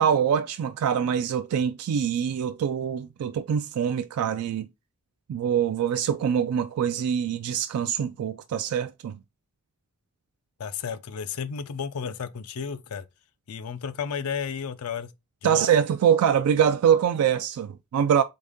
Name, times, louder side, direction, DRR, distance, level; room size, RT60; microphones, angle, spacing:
voice 1, 0.0-4.7 5.3-9.2 15.4-18.2, right 8 dB, 85° right, 0.3 m, -24 dB
voice 2, 10.6-13.0 13.5-15.1 15.4-15.7, left 6 dB, 85° left, 0.5 m, -33 dB
3.9 x 3.4 x 3.5 m
head